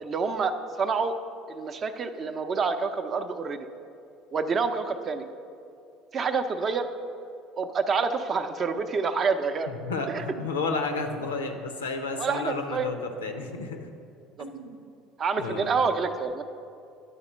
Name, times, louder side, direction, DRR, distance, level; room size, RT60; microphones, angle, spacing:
voice 1, 0.0-1.1 1.5-3.7 4.3-5.3 6.1-6.9 7.6-9.7 10.1-10.2 12.2-12.9 14.4-14.5 15.2-16.4, right 5 dB, 40° right, 8 dB, 0.5 m, -27 dB
voice 2, 9.7-13.9 14.4-14.8 15.4-15.7, left 3 dB, 90° left, 6 dB, 0.6 m, -32 dB
10.5 x 4.2 x 5.4 m, 2.5 s
hypercardioid pair, 65°, 0 cm